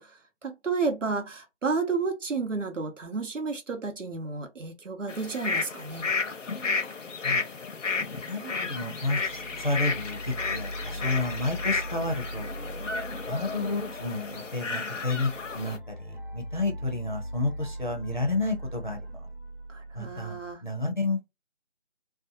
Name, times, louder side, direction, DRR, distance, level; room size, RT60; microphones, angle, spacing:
voice 1, 0.0-6.1 19.7-20.6, right 4 dB, 85° right, 1.0 m, -31 dB
sound 1, 5.1-15.8, left 4 dB, 85° left, 0.8 m, -32 dB
voice 2, 8.1-12.5 12.8-12.9 13.3-19.0 19.9-21.3, left 2 dB, 40° left, 0.5 m, -31 dB
sound 2, 8.8-20.5, equal, 50° right, 0.5 m, -40 dB
2.7 x 2.2 x 2.6 m
figure-of-eight pair, 180°, 36 cm